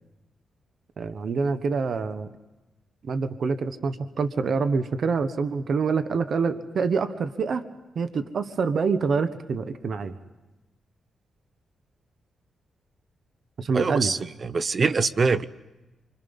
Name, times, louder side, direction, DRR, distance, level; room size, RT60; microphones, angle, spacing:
voice 1, 1.0-2.3 3.0-7.6 7.9-10.2 13.6-14.1, right 5 dB, 60° right, 1.2 m, -26 dB
voice 2, 13.7-15.5, right 4 dB, 45° right, 0.8 m, -24 dB
27.0 x 25.0 x 5.5 m
cardioid pair, 80°, 0 cm